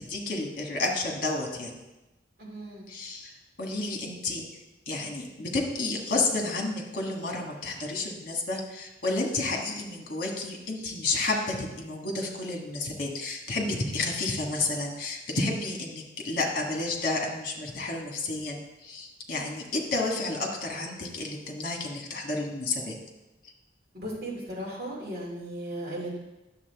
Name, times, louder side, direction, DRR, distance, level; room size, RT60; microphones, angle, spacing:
voice 1, 0.0-1.7 2.9-4.4 4.9-22.9, left 2 dB, 50° left, 1 dB, 1.5 m, -31 dB
voice 2, 2.4-2.8 23.9-26.2, right 1 dB, 55° right, -4 dB, 2.7 m, -36 dB
9.9 x 7.2 x 3.5 m, 1.0 s
head